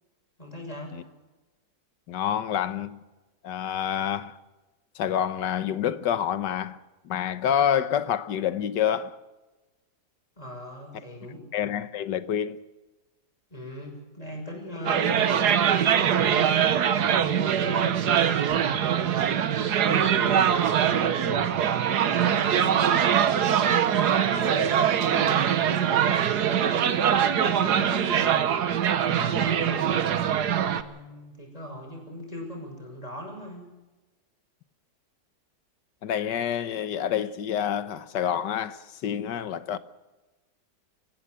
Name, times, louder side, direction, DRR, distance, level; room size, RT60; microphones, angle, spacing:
voice 1, 0.4-0.9 10.4-11.5 13.5-19.1 19.7-33.7, equal, 20° left, 6.2 m, -39 dB
voice 2, 2.1-3.0 3.4-4.4 4.9-6.8 7.0-9.2 11.5-12.6 36.0-39.8, left 9 dB, 85° left, 1.6 m, -27 dB
sound 1, 14.8-30.8, right 9 dB, 70° right, 1.6 m, -23 dB
25.0 x 15.5 x 7.7 m
omnidirectional pair, 1.8 m